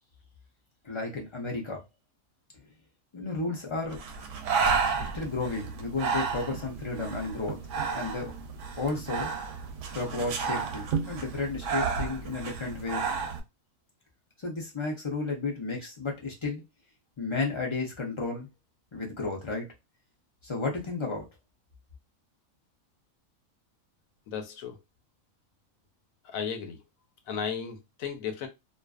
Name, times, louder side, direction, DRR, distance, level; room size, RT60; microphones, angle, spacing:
voice 1, 0.8-1.8 3.1-4.0 5.0-7.6 7.9-8.3 8.8-9.3 9.9-13.1 14.4-16.6 17.2-18.5 18.9-19.7 20.4-21.3, left 3 dB, 45° left, 0.4 m, -33 dB
Breathing, 3.9-13.4, right 5 dB, 70° right, 0.8 m, -32 dB
voice 2, 24.3-24.8 26.2-26.8 27.3-28.5, left 7 dB, 80° left, 1.0 m, -34 dB
2.5 x 2.3 x 2.3 m
omnidirectional pair, 1.5 m